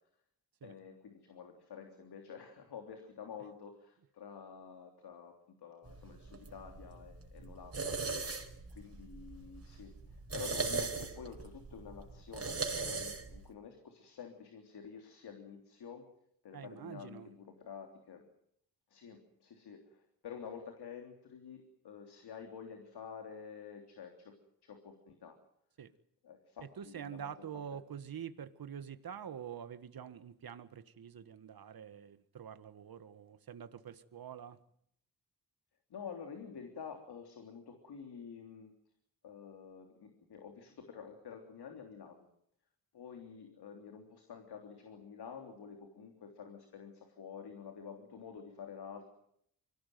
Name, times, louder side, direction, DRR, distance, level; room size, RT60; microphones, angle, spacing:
voice 1, 0.6-8.4 8.7-16.0 16.4-18.2 18.9-24.3 24.6-25.4 26.2-27.3 27.7-27.8 35.9-38.7 39.2-42.3 42.9-49.0, left 6 dB, 80° left, 4 dB, 3.4 m, -49 dB
sound 1, 5.9-13.5, right 4 dB, 40° right, 5.0 m, -40 dB
voice 2, 16.5-17.3 25.8-25.9 26.8-34.6, right 8 dB, 65° right, 11 dB, 1.7 m, -46 dB
24.5 x 17.5 x 9.4 m, 0.71 s
cardioid pair, 70°, 38 cm